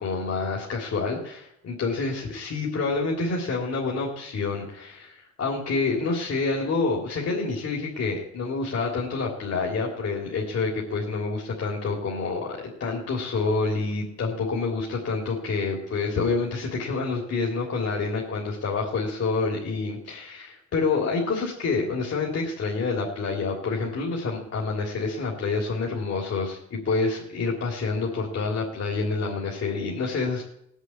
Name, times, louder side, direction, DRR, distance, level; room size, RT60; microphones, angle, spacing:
voice 1, 0.0-30.4, left 4 dB, 55° left, -2 dB, 3.3 m, -28 dB
18.5 x 8.2 x 8.7 m, 0.78 s
cardioid pair, 90°, 30 cm